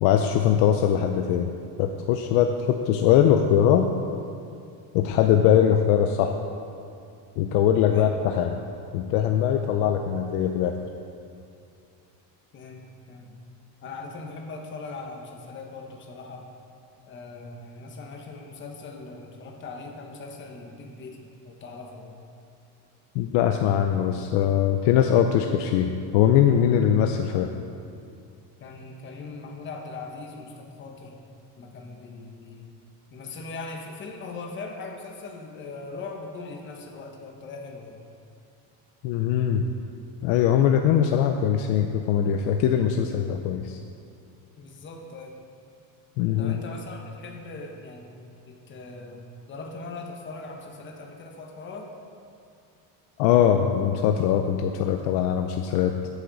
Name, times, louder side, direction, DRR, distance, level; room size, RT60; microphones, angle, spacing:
voice 1, 0.0-1.5 1.8-3.9 4.9-6.4 7.4-8.6 8.9-10.8 23.1-27.5 39.0-39.7 40.2-43.8 46.2-46.5 53.2-55.9, left 9 dB, 75° left, 5 dB, 0.7 m, -21 dB
voice 2, 12.5-13.4 13.8-16.5 17.0-22.1 28.6-31.2 31.6-32.7 33.1-38.0 44.6-45.4 46.4-48.2 48.5-51.9, left 3 dB, 25° left, 1 dB, 1.1 m, -40 dB
14.0 x 8.2 x 4.0 m, 2.4 s
cardioid pair, 160°, 43 cm